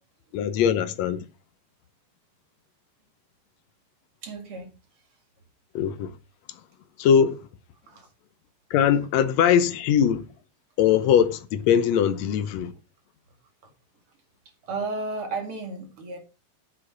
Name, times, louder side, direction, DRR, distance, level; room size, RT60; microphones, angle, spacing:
voice 1, 0.3-1.3 5.8-6.1 7.0-7.4 8.7-10.2 10.8-12.7, left 8 dB, 75° left, 1.7 m, -21 dB
voice 2, 4.2-5.0 7.9-8.1 13.6-13.7 14.6-16.2, right 3 dB, 45° right, 2.6 m, -34 dB
8.4 x 8.0 x 4.6 m
omnidirectional pair, 4.0 m